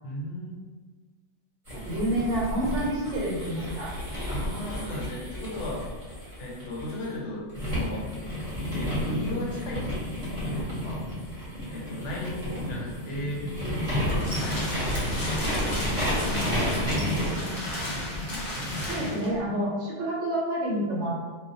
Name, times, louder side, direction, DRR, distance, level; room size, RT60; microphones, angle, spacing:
voice 1, 0.0-0.7 4.3-5.9 6.4-8.1 8.7-10.1 10.4-11.1 11.7-13.5 14.0-15.0 15.4-17.4, left 1 dB, 75° left, -4 dB, 0.9 m, -36 dB
sound 1, 1.7-7.1 7.5-19.2, equal, 35° right, 0.9 m, -31 dB
voice 2, 1.8-3.9 16.2-16.5 18.9-21.3, right 1 dB, 85° right, -3 dB, 1.0 m, -28 dB
sound 2, 13.8-19.4, left 1 dB, 45° left, 0.7 m, -35 dB
2.3 x 2.1 x 2.7 m, 1.4 s
omnidirectional pair, 1.2 m